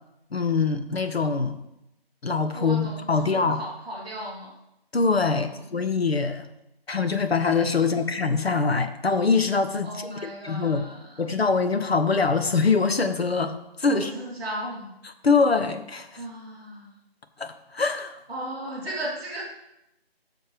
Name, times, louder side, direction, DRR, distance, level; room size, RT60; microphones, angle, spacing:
voice 1, 0.3-1.6 2.2-3.6 4.9-6.5 6.9-10.9 11.2-14.1 15.2-16.2 17.4-18.2, left 4 dB, 75° left, 8 dB, 1.0 m, -24 dB
voice 2, 2.5-4.5 5.3-5.6 7.8-8.0 9.8-11.2 13.9-14.9 16.2-16.9 18.3-19.4, right 1 dB, 5° right, -15 dB, 1.5 m, -36 dB
12.5 x 6.5 x 3.4 m, 0.87 s
figure-of-eight pair, 170°, 31 cm